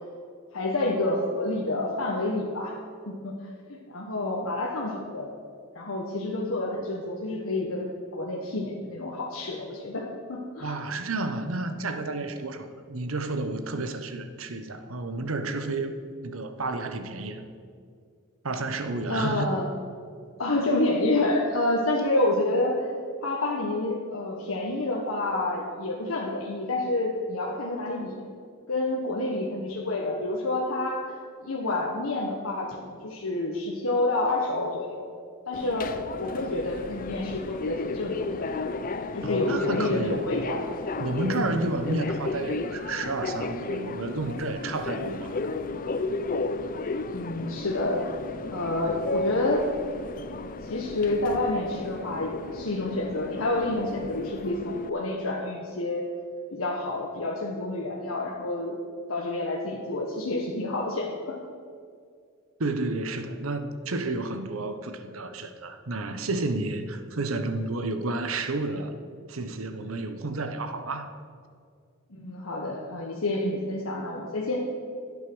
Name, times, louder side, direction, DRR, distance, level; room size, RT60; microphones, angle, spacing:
voice 1, 0.5-2.7 3.1-3.3 3.7-5.3 5.7-10.8 19.1-19.7 20.4-22.9 23.2-28.2 28.7-31.1 31.4-35.1 35.5-38.5 39.1-40.6 41.4-41.5 47.1-48.1 48.5-49.7 50.6-56.2 56.5-58.8 59.1-61.4 72.1-74.6, left 2 dB, 90° left, -2 dB, 1.2 m, -28 dB
voice 2, 10.6-15.9 16.2-17.4 18.4-19.5 39.2-40.2 41.0-45.4 62.6-68.9 69.3-71.1, right 2 dB, 90° right, 9 dB, 1.0 m, -31 dB
Subway metro underground, 35.5-54.9, left 3 dB, 45° left, 0.5 m, -34 dB
11.5 x 8.4 x 6.2 m, 2.2 s
head